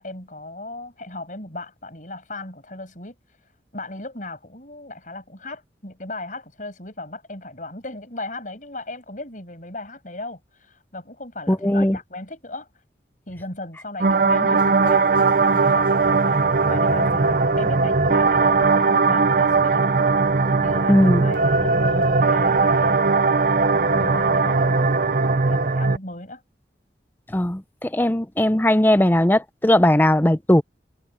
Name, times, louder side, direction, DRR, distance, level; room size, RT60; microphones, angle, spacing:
voice 1, 0.0-3.2 3.7-12.7 13.3-19.8 20.4-23.1 23.9-24.8 25.5-26.4, left 2 dB, 45° left, 7.0 m, -36 dB
voice 2, 11.5-12.0 20.9-21.3 27.3-30.6, left 1 dB, 10° left, 0.6 m, -18 dB
sound 1, 14.0-26.0, right 4 dB, 50° right, 0.6 m, -19 dB
head